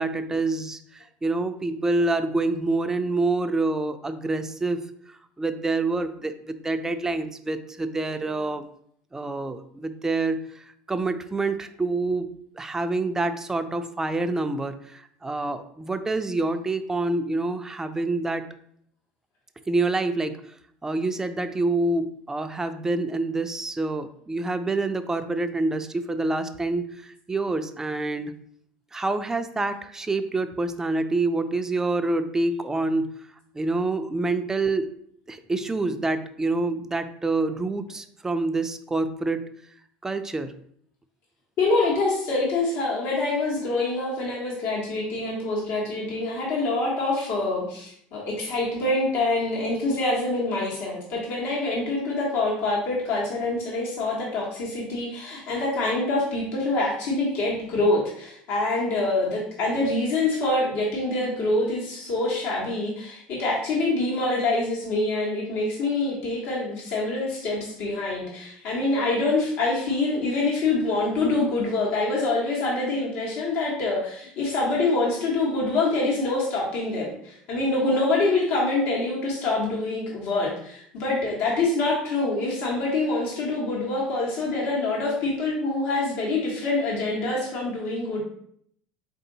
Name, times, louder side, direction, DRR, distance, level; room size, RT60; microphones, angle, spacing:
voice 1, 0.0-4.8 5.1-8.7 9.1-18.5 19.7-20.4 20.8-28.3 28.9-33.2 33.5-34.9 35.3-39.5 40.0-40.5, right 2 dB, 10° right, 9 dB, 0.4 m, -27 dB
voice 2, 41.6-88.2, left 2 dB, 70° left, -4 dB, 1.3 m, -25 dB
3.7 x 2.7 x 3.9 m, 0.67 s
supercardioid pair, 100°, 4 cm